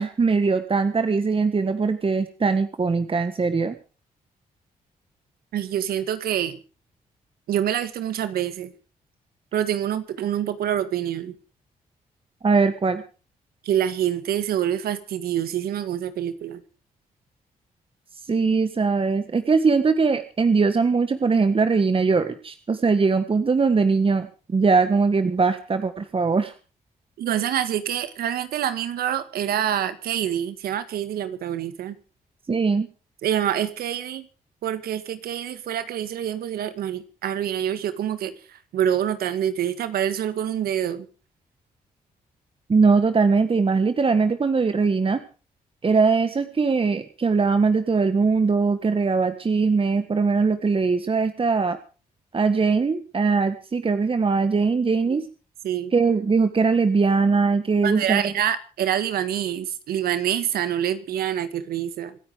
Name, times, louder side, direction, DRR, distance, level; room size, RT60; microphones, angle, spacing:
voice 1, 0.0-3.7 12.4-13.0 18.3-26.5 32.5-32.9 42.7-45.2 45.8-51.8 52.3-55.3 55.9-58.3, right 4 dB, 35° right, 1.6 m, -21 dB
voice 2, 5.5-6.6 7.5-8.7 9.5-11.4 13.6-16.6 27.2-32.0 33.2-34.3 34.6-41.1 55.6-55.9 57.8-62.2, right 10 dB, 85° right, 1.8 m, -26 dB
26.0 x 9.4 x 5.0 m
cardioid pair, 70°, 15 cm